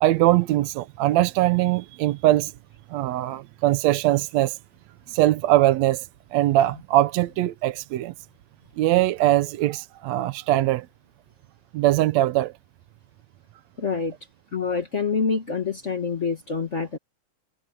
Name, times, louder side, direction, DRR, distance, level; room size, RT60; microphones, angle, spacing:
voice 1, 0.0-2.5 2.9-4.6 5.1-8.1 8.8-10.9 11.7-12.5, right 15 dB, 75° right, 1.8 m, -21 dB
voice 2, 13.8-14.1 14.5-17.0, left 5 dB, 40° left, 1.0 m, -26 dB
omnidirectional pair, 3.4 m